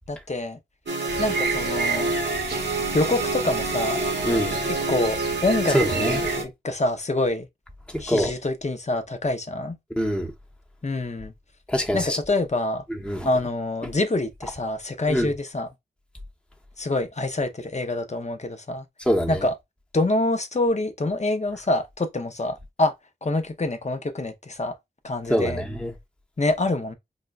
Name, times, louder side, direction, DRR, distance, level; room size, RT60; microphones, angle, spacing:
voice 1, 0.1-0.6 1.2-2.1 2.9-4.0 4.7-7.5 8.0-9.8 10.8-11.3 11.9-12.8 13.2-15.7 16.8-18.8 19.3-19.5 19.9-22.9 23.2-24.7 25.0-25.6 26.4-26.9, left 2 dB, 40° left, 0.8 m, -26 dB
sound 1, 0.9-6.4, right 2 dB, 85° right, 1.2 m, -27 dB
sound 2, 1.1-6.4, right 4 dB, 65° right, 0.9 m, -32 dB
voice 2, 4.2-4.6 5.7-6.2 7.9-8.3 10.0-10.3 11.7-12.2 13.0-13.3 15.1-15.3 19.1-19.4 25.3-25.9, equal, 5° left, 0.9 m, -24 dB
5.1 x 2.2 x 2.5 m
cardioid pair, 45°, 18 cm